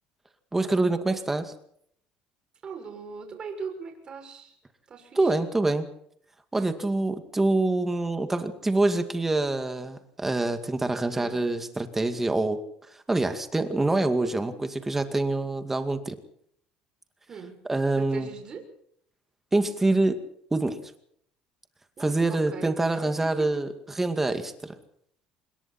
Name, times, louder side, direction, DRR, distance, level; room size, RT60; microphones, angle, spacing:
voice 1, 0.5-1.5 5.2-5.9 6.5-12.6 12.9-16.2 17.7-18.3 19.5-20.2 20.5-20.8 22.0-24.7, right 2 dB, 10° right, 8 dB, 2.2 m, -26 dB
voice 2, 2.6-4.5 4.9-5.3 11.1-11.4 17.3-17.6 17.9-18.6 22.0-23.0, right 5 dB, 30° right, 4 dB, 6.7 m, -40 dB
27.0 x 22.0 x 4.4 m, 0.68 s
cardioid pair, 135°, 3 cm